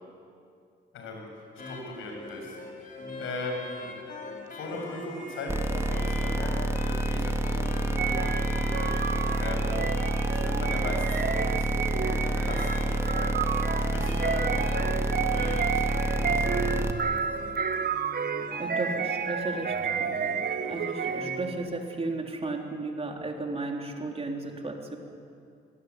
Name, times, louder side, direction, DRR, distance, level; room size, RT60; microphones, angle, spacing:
voice 1, 0.9-3.8 4.5-9.9 10.3-16.8, left 2 dB, 85° left, 1 dB, 7.5 m, -39 dB
sound 1, 1.6-21.6, left 2 dB, 45° left, 5.1 m, -41 dB
sound 2, 5.5-16.9, right 1 dB, 15° right, 2.1 m, -28 dB
sound 3, 8.0-21.6, right 6 dB, 50° right, 1.4 m, -31 dB
voice 2, 18.6-20.2 20.7-25.0, right 2 dB, 30° right, 2 dB, 4.0 m, -34 dB
24.5 x 21.0 x 9.8 m, 2.4 s
cardioid pair, 90°, 20 cm